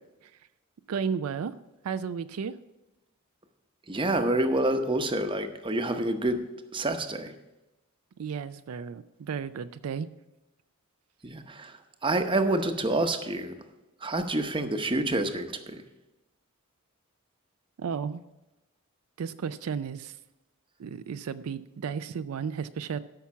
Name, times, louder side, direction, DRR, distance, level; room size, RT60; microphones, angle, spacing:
voice 1, 0.9-1.5 1.8-2.5 8.2-10.1 17.8-18.2 19.2-20.2 20.8-23.0, right 6 dB, 75° right, 12 dB, 0.4 m, -33 dB
voice 2, 3.9-6.4 6.7-7.3 11.2-13.6 14.0-15.8, right 1 dB, 25° right, 7 dB, 0.8 m, -28 dB
13.0 x 5.8 x 5.9 m, 1.0 s
head